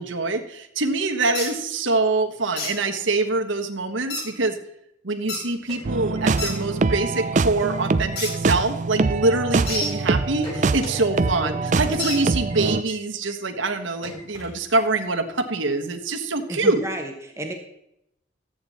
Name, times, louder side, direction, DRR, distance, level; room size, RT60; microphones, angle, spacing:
voice 1, 0.0-4.6 5.0-16.8, right 3 dB, 80° right, 5 dB, 1.4 m, -24 dB
sound 1, 1.3-1.5 2.6-2.7 4.1-4.3 5.3-5.4 6.4-6.5 8.2-8.3 9.7-9.9 12.0-12.2, left 2 dB, 55° left, 3.9 m, -28 dB
sound 2, 5.5-6.6 6.9-7.0 7.3-7.8 8.1-9.7 10.1-11.0 11.3-11.4 11.7-11.8 12.1-12.2 12.5-12.6 12.9-13.0 13.3-13.4 13.7-13.8 14.0-15.1, left 1 dB, 35° left, 5.0 m, -41 dB
sound 3, 5.8-12.8, right 3 dB, 40° right, 0.4 m, -24 dB
voice 2, 10.9-11.9 16.5-17.5, right 1 dB, 15° right, 3 dB, 1.1 m, -34 dB
13.5 x 8.7 x 4.2 m, 0.80 s
head